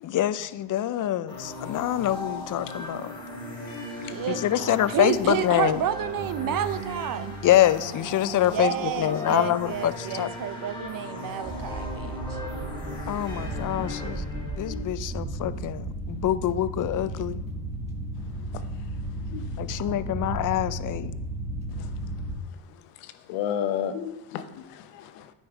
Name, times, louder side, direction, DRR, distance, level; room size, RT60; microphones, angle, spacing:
voice 1, 0.0-3.1 4.3-5.8 7.4-10.3 13.1-14.2 14.6-17.4 19.6-21.1, left 12 dB, 40° left, 0.5 m, -25 dB
sound 1, 1.3-14.8, left 1 dB, 10° left, 3.1 m, -37 dB
voice 2, 4.0-7.4 8.5-12.4, right 9 dB, 45° right, 0.6 m, -30 dB
sound 2, 11.4-22.4, right 1 dB, 15° right, 1.2 m, -34 dB
voice 3, 14.6-14.9 18.5-18.6 19.3-19.8 21.7-21.9 22.7-25.3, left 9 dB, 85° left, 0.9 m, -34 dB
9.4 x 5.6 x 4.7 m
cardioid pair, 95°, 50 cm